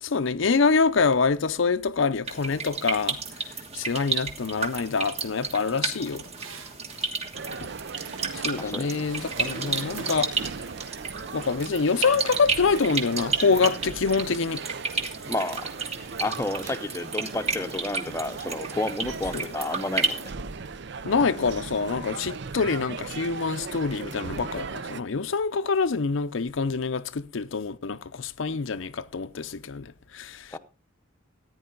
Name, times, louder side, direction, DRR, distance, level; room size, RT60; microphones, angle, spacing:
voice 1, 0.0-3.2 3.7-6.2 8.3-10.3 11.3-14.6 19.3-19.5 21.0-30.6, left 4 dB, 75° left, 0.6 m, -26 dB
sound 1, 2.3-20.3, right 4 dB, 35° right, 1.5 m, -32 dB
sound 2, 5.9-7.1 8.2-8.7 9.0-10.5, right 3 dB, 85° right, 2.2 m, -42 dB
sound 3, 7.3-25.0, right 5 dB, 60° right, 0.6 m, -38 dB
voice 2, 8.6-9.0 15.3-15.7 16.2-20.3 30.5-30.6, left 2 dB, 15° left, 0.7 m, -31 dB
14.5 x 9.5 x 3.9 m
head